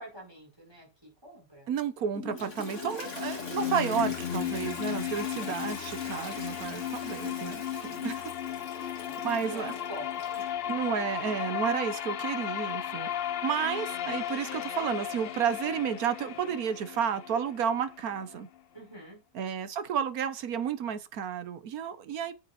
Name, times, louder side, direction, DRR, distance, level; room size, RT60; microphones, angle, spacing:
voice 1, 0.0-1.7 2.7-3.1 5.1-5.6 6.0-6.2 9.0-10.4 11.4-11.5 12.9-13.2 18.7-19.2, right 1 dB, 15° right, 5.2 m, -47 dB
voice 2, 1.7-8.3 9.2-9.7 10.7-18.5 19.3-22.3, right 7 dB, 65° right, 1.3 m, -32 dB
Toilet flush, 2.1-10.7, left 2 dB, 45° left, 2.7 m, -44 dB
sound 1, 2.4-18.4, left 10 dB, 85° left, 0.5 m, -35 dB
8.0 x 7.7 x 4.2 m
omnidirectional pair, 1.8 m